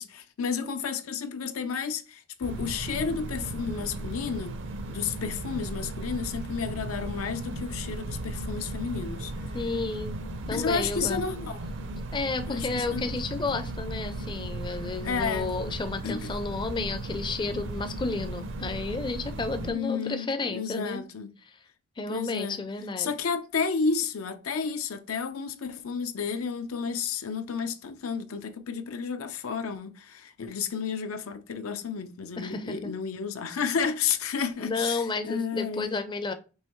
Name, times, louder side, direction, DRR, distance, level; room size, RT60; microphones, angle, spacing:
voice 1, 0.0-4.5 4.9-9.3 10.5-11.6 12.5-13.2 14.2-14.3 15.0-15.5 16.0-16.3 19.6-21.3 22.1-22.6 23.0-35.9, left 5 dB, 90° left, 0.6 m, -31 dB
sound 1, 2.4-19.7, right 2 dB, 60° right, 0.6 m, -36 dB
voice 2, 9.5-10.2 10.5-11.2 12.1-21.0 21.5-21.6 22.0-23.1 32.4-32.9 34.6-36.3, left 3 dB, 20° left, 0.4 m, -32 dB
5.5 x 3.0 x 3.0 m
head